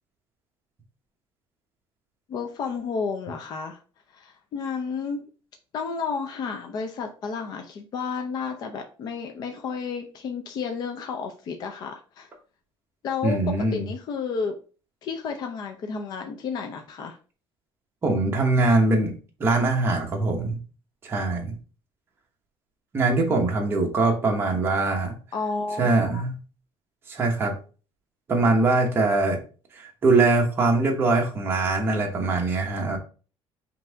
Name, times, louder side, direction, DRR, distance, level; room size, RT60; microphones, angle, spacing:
voice 1, 2.3-3.8 4.1-5.2 5.7-12.3 13.0-14.5 15.0-17.2 25.3-26.2, left 5 dB, 45° left, 4 dB, 0.5 m, -31 dB
voice 2, 13.2-13.9 18.0-19.1 19.4-20.6 21.0-21.5 22.9-25.1 25.8-26.3 27.1-27.5 28.3-29.4 29.8-33.0, right 3 dB, 25° right, 0 dB, 1.1 m, -22 dB
5.6 x 2.7 x 3.4 m, 0.37 s
cardioid pair, 175°, 10 cm